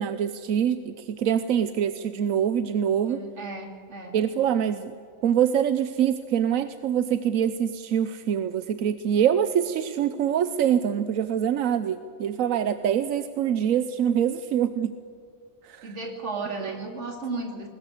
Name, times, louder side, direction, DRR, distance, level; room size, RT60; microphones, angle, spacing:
voice 1, 0.0-3.2 4.1-4.9 5.2-14.9 15.6-15.9 16.6-16.8, right 9 dB, 85° right, 12 dB, 1.2 m, -25 dB
voice 2, 3.0-4.2 15.8-17.7, right 3 dB, 60° right, 4 dB, 2.9 m, -35 dB
20.5 x 20.0 x 8.3 m, 2.3 s
omnidirectional pair, 1.4 m